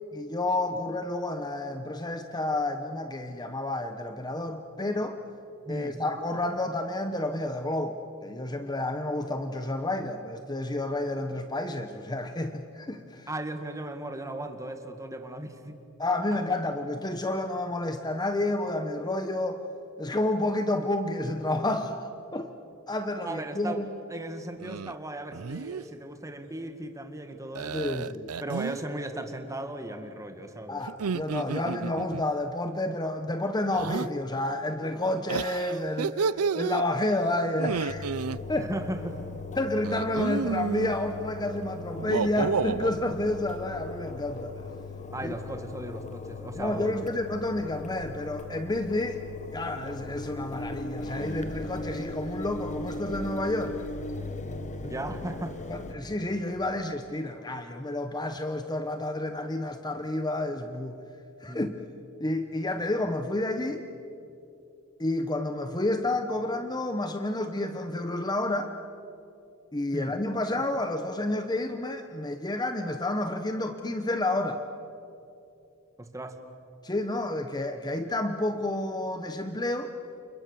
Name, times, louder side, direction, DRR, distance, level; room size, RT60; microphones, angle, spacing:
voice 1, 0.1-5.2 5.7-13.3 16.0-19.6 20.0-22.5 22.9-23.9 27.7-28.3 30.7-38.0 38.5-38.7 39.6-44.5 45.2-45.3 46.6-49.2 49.5-53.8 55.7-61.0 61.4-61.8 62.2-63.8 65.0-68.7 69.7-74.6 76.8-79.9, left 1 dB, 20° left, 7 dB, 1.0 m, -30 dB
voice 2, 5.7-6.0 13.3-15.7 16.3-16.4 23.2-23.8 24.1-28.0 28.4-30.9 38.6-39.2 45.1-47.1 54.8-55.6 61.5-61.7 69.9-70.2 76.0-76.4, right 1 dB, 15° right, 6 dB, 2.0 m, -37 dB
sound 1, 24.6-24.9 25.3-25.8 27.5-28.8 30.9-32.2 33.7-34.1 35.3-36.8 37.5-38.4 39.8-40.9 41.9-42.9, right 5 dB, 85° right, 0.5 m, -31 dB
Engine, 37.9-56.0, left 2 dB, 35° left, 1.4 m, -38 dB
29.5 x 28.5 x 7.0 m, 2.8 s
head